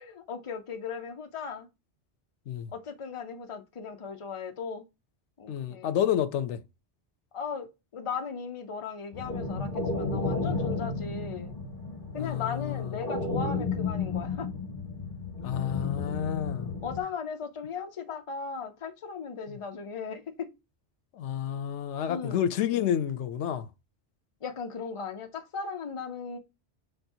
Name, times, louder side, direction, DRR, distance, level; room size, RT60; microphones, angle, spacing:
voice 1, 0.0-1.7 2.7-4.8 5.4-5.9 7.3-11.5 12.1-14.5 16.8-20.5 22.1-22.4 24.4-26.4, left 5 dB, 35° left, 0.6 m, -37 dB
voice 2, 5.5-6.6 12.2-13.0 15.4-16.7 21.1-23.7, left 10 dB, 90° left, 0.9 m, -30 dB
sound 1, 9.1-17.0, left 3 dB, 50° left, 1.3 m, -33 dB
5.9 x 3.2 x 2.7 m
omnidirectional pair, 1.1 m